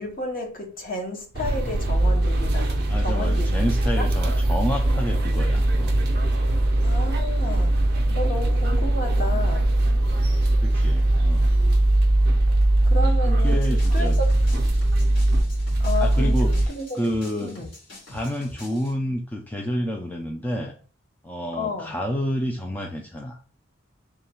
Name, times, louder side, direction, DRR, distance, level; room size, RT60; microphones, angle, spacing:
voice 1, 0.0-3.6 4.0-4.1 5.5-5.6 6.8-7.7 8.1-9.7 12.9-14.3 15.8-17.0 17.4-17.7 21.5-21.9, left 2 dB, 45° left, 0.9 m, -32 dB
sound 1, 1.3-16.7, right 1 dB, 50° right, 0.5 m, -20 dB
voice 2, 2.8-6.0 8.1-8.2 10.0-11.5 13.2-14.2 16.0-17.5 18.1-20.7 21.2-23.4, equal, 10° left, 0.3 m, -29 dB
sound 2, 13.4-18.9, left 1 dB, 75° left, 2.0 m, -44 dB
3.5 x 2.2 x 4.2 m
head